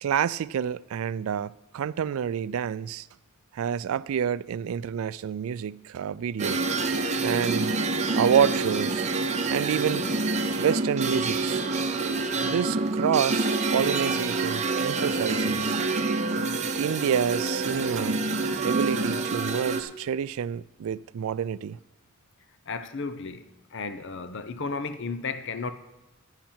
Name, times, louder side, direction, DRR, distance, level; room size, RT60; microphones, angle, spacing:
voice 1, 0.0-3.1 3.5-6.6 7.2-7.8 8.2-9.1 9.5-10.1 10.6-11.6 12.4-15.8 16.8-18.3 18.6-21.8, right 8 dB, 80° right, 0.3 m, -28 dB
sound 1, 6.4-19.8, right 3 dB, 35° right, 0.8 m, -27 dB
voice 2, 22.7-25.7, left 4 dB, 60° left, 0.7 m, -34 dB
10.5 x 10.5 x 4.4 m
head